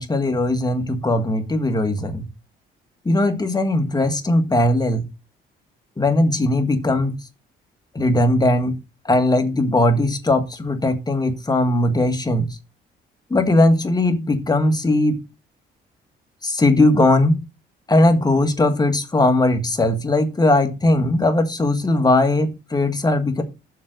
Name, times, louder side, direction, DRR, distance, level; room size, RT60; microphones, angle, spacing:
voice 1, 0.0-2.2 3.1-5.0 6.0-7.1 8.0-8.7 9.1-12.5 13.3-15.2 16.4-17.4 17.9-23.4, left 1 dB, 20° left, 6 dB, 1.9 m, -19 dB
7.5 x 5.4 x 6.7 m, 0.28 s
cardioid pair, 90°, 20 cm